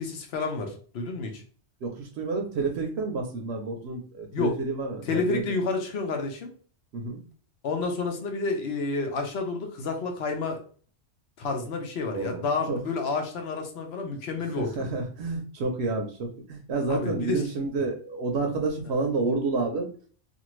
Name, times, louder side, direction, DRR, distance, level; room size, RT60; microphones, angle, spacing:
voice 1, 0.0-1.4 4.3-4.6 5.1-6.5 7.6-10.6 11.4-14.9 16.9-17.4, left 4 dB, 65° left, 4 dB, 0.9 m, -30 dB
voice 2, 1.8-5.6 6.9-7.2 12.1-12.8 14.5-19.9, right 3 dB, 70° right, 3 dB, 0.8 m, -30 dB
2.5 x 2.5 x 3.0 m, 0.43 s
omnidirectional pair, 1.2 m